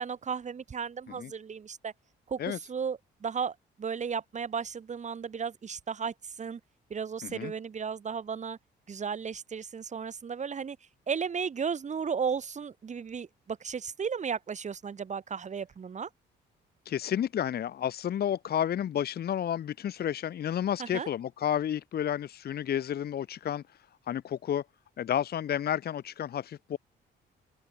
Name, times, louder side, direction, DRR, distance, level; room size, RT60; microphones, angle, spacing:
voice 1, 0.0-1.9 2.3-6.6 6.9-8.6 8.9-10.8 11.1-16.1 20.8-21.1, right 6 dB, 35° right, 1.2 m, -34 dB
voice 2, 7.2-7.5 16.9-23.6 24.1-24.6 25.0-26.8, left 10 dB, 55° left, 0.8 m, -31 dB
open air
cardioid pair, 90°, 20 cm